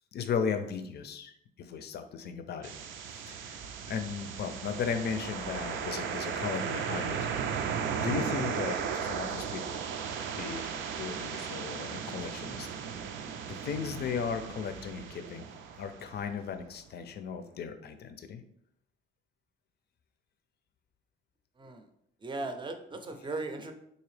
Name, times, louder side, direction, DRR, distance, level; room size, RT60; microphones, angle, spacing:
voice 1, 0.1-1.3 1.6-2.7 3.1-3.6 3.9-7.2 7.5-7.7 8.0-9.8 10.4-12.7 13.5-15.5 15.8-18.4, left 6 dB, 55° left, 8 dB, 0.5 m, -36 dB
sound 1, 2.6-16.5, right 7 dB, 75° right, 0.4 m, -36 dB
voice 2, 22.2-23.7, right 2 dB, 25° right, 6 dB, 0.5 m, -37 dB
3.8 x 2.7 x 3.2 m, 0.74 s
cardioid pair, 90°, 20 cm